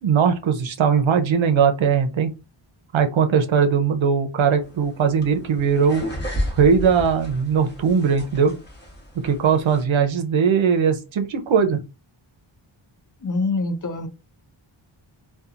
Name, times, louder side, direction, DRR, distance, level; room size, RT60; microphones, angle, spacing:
voice 1, 0.0-2.3 2.9-6.0 6.5-8.6 9.2-11.8, right 6 dB, 70° right, 7 dB, 0.6 m, -19 dB
sound 1, 4.6-9.8, equal, 20° left, 1.0 m, -33 dB
voice 2, 13.2-14.1, left 3 dB, 40° left, 7 dB, 0.5 m, -25 dB
2.8 x 2.2 x 2.4 m, 0.27 s
wide cardioid pair, 110°, 49 cm